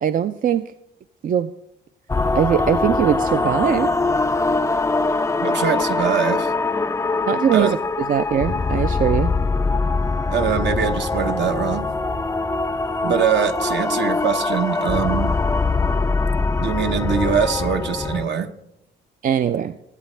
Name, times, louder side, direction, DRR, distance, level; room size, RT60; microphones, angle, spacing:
voice 1, 0.0-0.7 1.2-1.5 2.3-3.9 7.3-7.8 8.1-9.3 19.2-19.8, right 9 dB, 45° right, 11 dB, 0.4 m, -20 dB
sound 1, 2.1-18.2, left 3 dB, 15° left, 0.4 m, -22 dB
voice 2, 5.4-6.5 7.5-7.8 10.3-11.9 13.0-15.3 16.6-18.5, right 8 dB, 60° right, 8 dB, 0.9 m, -22 dB
20.5 x 8.3 x 3.3 m, 0.84 s
cardioid pair, 90°, 20 cm